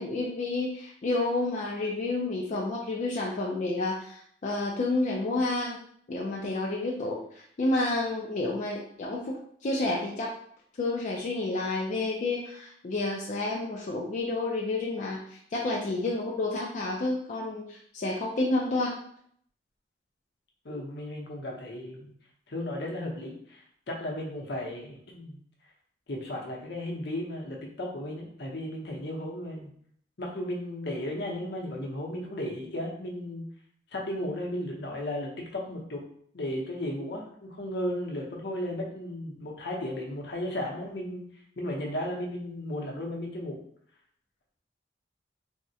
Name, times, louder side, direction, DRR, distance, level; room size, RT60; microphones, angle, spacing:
voice 1, 0.0-5.8 6.1-9.4 9.6-10.3 10.8-18.9, left 2 dB, 45° left, -3 dB, 0.4 m, -30 dB
voice 2, 20.6-22.1 22.5-25.4 26.1-29.7 30.2-33.4 33.9-36.0 36.3-41.2 41.6-43.6, left 1 dB, 70° left, -1 dB, 0.7 m, -35 dB
3.5 x 2.1 x 2.7 m, 0.64 s
head